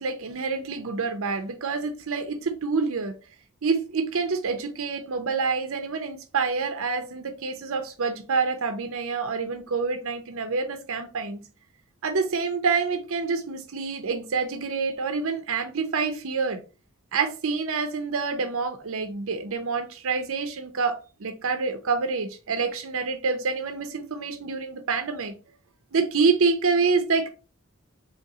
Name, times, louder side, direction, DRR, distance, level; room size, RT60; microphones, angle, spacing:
voice 1, 0.0-3.1 3.6-11.4 12.0-16.6 17.1-25.3 25.9-27.3, right 4 dB, 65° right, 0.6 m, -27 dB
4.1 x 2.9 x 3.8 m
head